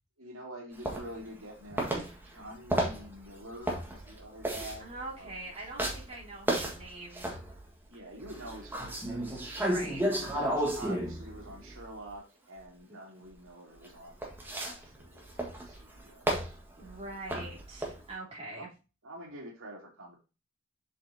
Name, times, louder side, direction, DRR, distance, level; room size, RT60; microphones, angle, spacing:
voice 1, 0.2-2.0 2.3-5.5 7.9-14.1 14.4-17.0 18.5-18.7 19.0-20.2, right 1 dB, 90° right, 0 dB, 2.4 m, -47 dB
sound 1, 0.8-1.5 1.8-7.7 8.2-12.1 13.8-18.1, right 1 dB, 10° right, 1.6 m, -33 dB
voice 2, 4.8-7.3 9.7-10.0 16.8-18.7, right 2 dB, 30° right, -6 dB, 3.4 m, -43 dB
7.3 x 5.6 x 2.8 m, 0.30 s
head